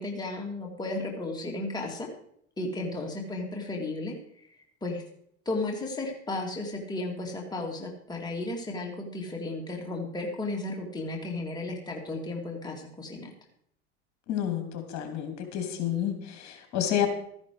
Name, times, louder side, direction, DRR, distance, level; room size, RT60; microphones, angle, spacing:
voice 1, 0.0-2.1 2.6-4.1 4.8-5.0 5.5-13.3, left 2 dB, 10° left, 0 dB, 2.4 m, -34 dB
voice 2, 14.3-17.1, left 10 dB, 50° left, 5 dB, 3.0 m, -30 dB
13.5 x 10.5 x 4.7 m, 0.69 s
hypercardioid pair, 100°, 35 cm